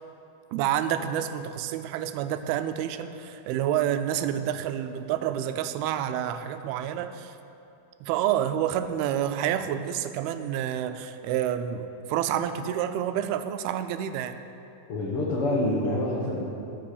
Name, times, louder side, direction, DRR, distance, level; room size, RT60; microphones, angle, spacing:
voice 1, 0.5-7.3 8.0-14.4, right 10 dB, 85° right, 10 dB, 2.5 m, -28 dB
voice 2, 14.9-16.4, left 1 dB, 90° left, -4 dB, 1.2 m, -26 dB
15.5 x 5.5 x 6.6 m, 2.8 s
omnidirectional pair, 4.4 m